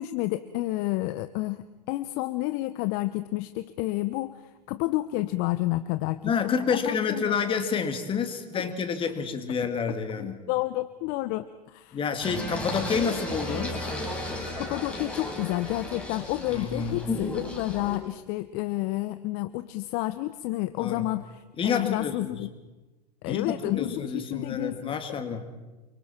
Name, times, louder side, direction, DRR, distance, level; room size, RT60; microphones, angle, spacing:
voice 1, 0.0-4.4 4.7-7.3 8.5-8.7 10.2-12.0 14.6-22.5 23.2-25.0, left 17 dB, 45° left, 13 dB, 0.8 m, -30 dB
voice 2, 6.2-10.5 11.9-13.9 16.5-17.0 20.8-21.1 21.6-22.4 23.3-25.5, left 6 dB, 25° left, 7 dB, 2.3 m, -29 dB
Singing, 12.2-18.0, left 2 dB, 5° left, 5.7 m, -34 dB
29.0 x 24.0 x 4.4 m, 1.2 s
hypercardioid pair, 95°, 21 cm